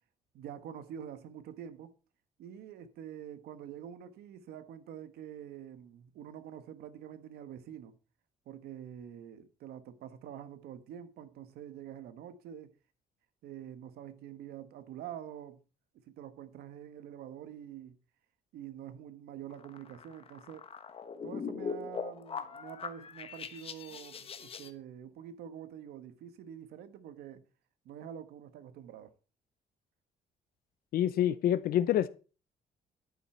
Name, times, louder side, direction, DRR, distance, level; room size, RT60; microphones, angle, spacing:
voice 1, 0.3-1.9 2.4-7.9 8.5-12.7 13.4-15.6 15.9-18.0 18.5-20.7 21.2-27.4 27.8-29.1, right 9 dB, 90° right, 1.3 m, -46 dB
sound 1, 19.5-24.7, left 6 dB, 35° left, 1.2 m, -41 dB
voice 2, 30.9-32.1, left 11 dB, 70° left, 0.7 m, -27 dB
11.0 x 9.5 x 4.3 m
cardioid pair, 130°, 16 cm